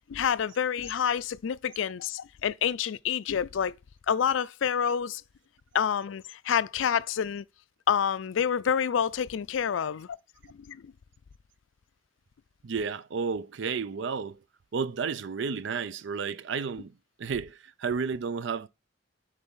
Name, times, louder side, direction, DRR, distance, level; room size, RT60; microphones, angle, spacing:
voice 1, 0.1-3.8 4.1-5.2 5.7-7.4 7.9-10.1 10.6-10.9, left 8 dB, 75° left, 0.4 m, -28 dB
voice 2, 12.6-14.4 14.7-18.7, right 5 dB, 65° right, 0.5 m, -32 dB
8.0 x 3.4 x 5.5 m
head